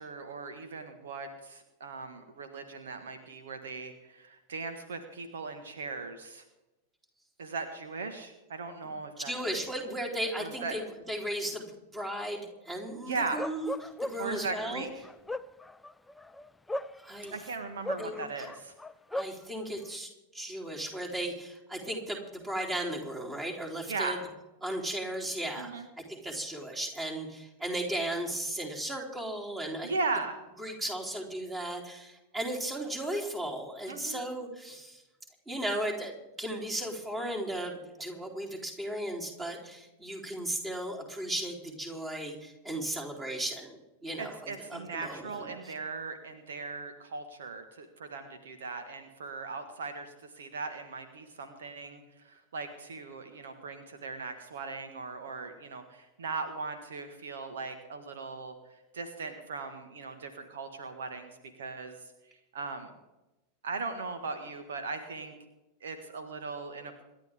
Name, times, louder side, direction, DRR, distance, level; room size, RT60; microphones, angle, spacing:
voice 1, 0.0-6.4 7.4-9.3 10.4-10.8 13.1-13.4 14.2-14.9 17.3-18.7 23.9-24.2 25.6-25.9 29.8-30.4 33.9-34.2 44.2-58.5 58.9-61.3 61.6-62.0 62.5-62.9 63.6-65.3 65.8-67.0, right 4 dB, 65° right, 8 dB, 1.6 m, -38 dB
voice 2, 8.8-13.7 14.0-14.9 17.0-17.4 18.0-18.5 19.1-24.2 24.6-29.9 30.6-35.0 35.5-45.7, right 1 dB, 15° right, 0 dB, 3.9 m, -36 dB
Bark, 13.3-14.4 15.0-17.4 17.8-19.4, left 1 dB, 5° left, 0.5 m, -36 dB
27.0 x 12.0 x 3.7 m, 0.99 s
figure-of-eight pair, 90°, 0 cm